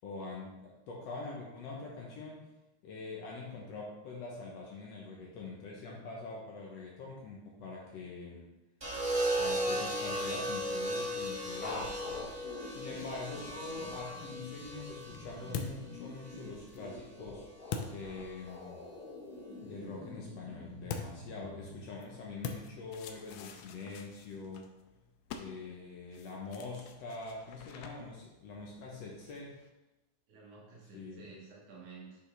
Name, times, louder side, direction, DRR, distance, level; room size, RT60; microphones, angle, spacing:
voice 1, 0.0-2.4 2.8-8.4 9.4-12.1 12.7-17.4 17.9-18.8 19.6-24.7 25.4-29.6 30.9-31.3, left 3 dB, 65° left, -2 dB, 1.9 m, -44 dB
sound 1, 8.8-17.0 18.2-18.6, right 1 dB, 15° right, 0.9 m, -36 dB
sound 2, 11.6-21.8, left 2 dB, 40° left, 1.7 m, -47 dB
sound 3, 14.4-18.8 20.9-29.7, left 6 dB, 80° left, 1.6 m, -46 dB
voice 2, 30.3-32.2, right 4 dB, 75° right, -5 dB, 3.1 m, -52 dB
8.1 x 5.3 x 3.3 m, 1.0 s
omnidirectional pair, 3.5 m